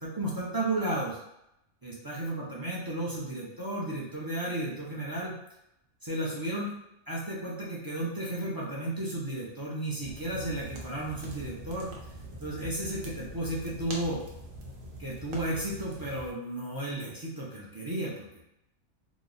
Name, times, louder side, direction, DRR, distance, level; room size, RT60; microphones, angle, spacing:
voice 1, 0.0-1.2 1.8-5.4 6.0-6.7 7.1-11.9 12.4-14.2 15.0-18.4, right 1 dB, 35° right, -5 dB, 0.3 m, -33 dB
sound 1, 10.0-16.3, right 1 dB, 75° right, 1.1 m, -43 dB
3.0 x 2.0 x 3.8 m, 0.84 s
omnidirectional pair, 1.4 m